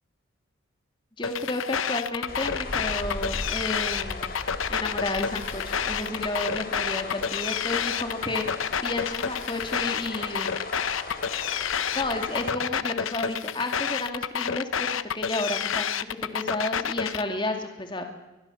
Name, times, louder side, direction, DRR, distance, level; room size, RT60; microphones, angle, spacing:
sound 1, 1.2-17.2, left 7 dB, 75° left, 0.8 m, -29 dB
voice 1, 1.2-4.4 4.7-8.5 8.8-10.5 11.9-18.0, left 2 dB, 25° left, 4 dB, 2.4 m, -32 dB
sound 2, 2.3-12.5, left 2 dB, 45° left, 3.8 m, -38 dB
22.5 x 22.0 x 7.2 m, 1.1 s
head